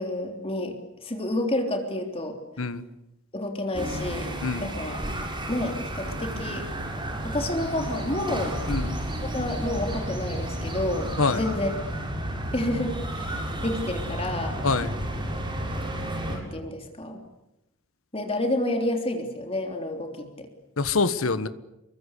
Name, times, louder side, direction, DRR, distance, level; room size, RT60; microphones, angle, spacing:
voice 1, 0.0-2.4 3.3-4.3 4.6-5.0 5.5-6.7 7.2-8.5 9.2-11.7 12.5-14.6 16.3-17.2 18.1-20.5, left 1 dB, 25° left, 4 dB, 3.4 m, -29 dB
sound 1, 3.7-16.4, right 1 dB, 25° right, 7.4 m, -32 dB
voice 2, 8.7-9.0 11.2-11.4 14.6-14.9 20.8-21.5, left 4 dB, 80° left, 12 dB, 1.5 m, -25 dB
28.5 x 23.5 x 8.4 m, 0.90 s
head